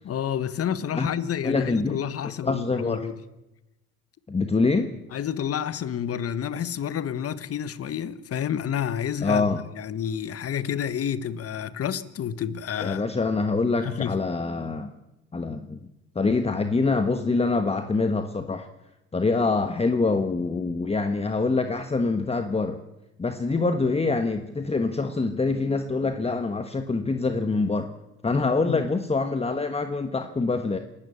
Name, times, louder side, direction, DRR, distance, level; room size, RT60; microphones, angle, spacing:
voice 1, 0.0-3.1 5.1-13.0 13.8-14.1 28.6-28.8, left 9 dB, 50° left, 1.5 m, -29 dB
voice 2, 1.4-2.0 2.4-3.1 4.3-5.0 9.2-9.6 12.8-14.9 15.3-15.8 16.1-18.7 19.1-22.8 23.2-27.9 28.2-30.8, left 3 dB, 20° left, 1.4 m, -25 dB
27.5 x 12.5 x 8.7 m
supercardioid pair, 80°, 31 cm